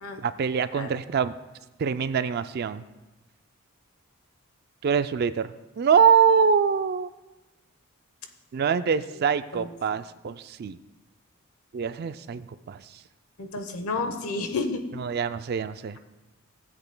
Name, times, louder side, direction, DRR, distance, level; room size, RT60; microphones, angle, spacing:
voice 1, 0.2-1.3 1.8-2.8 4.8-5.5 5.8-7.1 8.5-10.8 11.7-12.8 15.0-16.0, right 6 dB, 45° right, 12 dB, 0.3 m, -24 dB
voice 2, 13.4-14.8, left 3 dB, 80° left, 6 dB, 0.9 m, -30 dB
16.5 x 7.9 x 2.2 m, 1.1 s
head